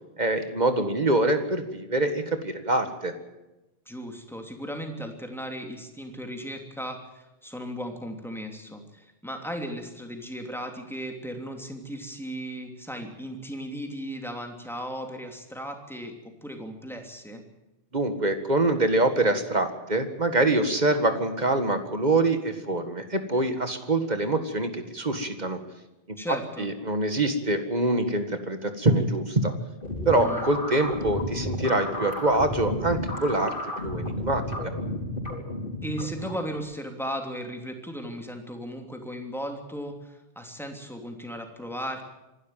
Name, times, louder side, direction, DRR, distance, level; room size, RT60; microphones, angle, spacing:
voice 1, 0.2-3.1 17.9-25.6 26.1-26.2 26.6-29.5 30.1-33.5 33.8-34.7, right 2 dB, 40° right, 8 dB, 2.0 m, -25 dB
voice 2, 3.9-17.4 26.2-26.7 30.1-30.5 35.8-42.0, equal, ahead, 3 dB, 3.0 m, -36 dB
sound 1, 29.8-36.6, left 1 dB, 50° left, 4.4 m, -32 dB
26.0 x 12.5 x 9.1 m, 0.99 s
omnidirectional pair, 1.1 m